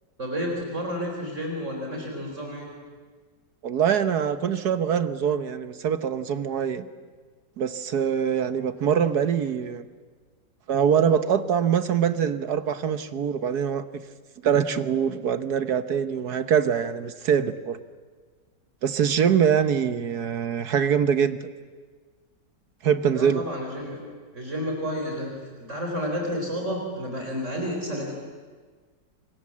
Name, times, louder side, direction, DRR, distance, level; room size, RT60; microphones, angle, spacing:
voice 1, 0.2-2.7 23.1-24.0 24.3-28.1, equal, 40° right, 0 dB, 4.7 m, -31 dB
voice 2, 3.6-6.8 7.6-9.8 10.7-14.0 14.4-17.8 18.8-21.4 22.8-23.4, right 8 dB, 65° right, 11 dB, 1.5 m, -24 dB
30.0 x 25.0 x 7.5 m, 1.5 s
omnidirectional pair, 1.9 m